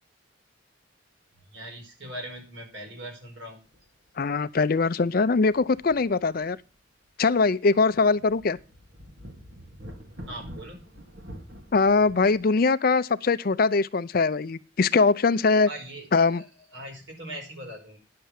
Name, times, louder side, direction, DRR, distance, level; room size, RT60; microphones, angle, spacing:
voice 1, 1.4-3.6 10.3-10.9 15.7-18.0, right 1 dB, 80° right, 5.2 m, -41 dB
sound 1, 3.7-3.9 4.2-4.3 5.2-6.7 7.0-7.1 7.7-12.4, equal, 65° right, 2.3 m, -46 dB
voice 2, 4.2-6.6 7.2-8.6 11.7-15.7 16.1-16.4, left 4 dB, 50° left, 0.5 m, -22 dB
10.5 x 6.8 x 7.4 m
head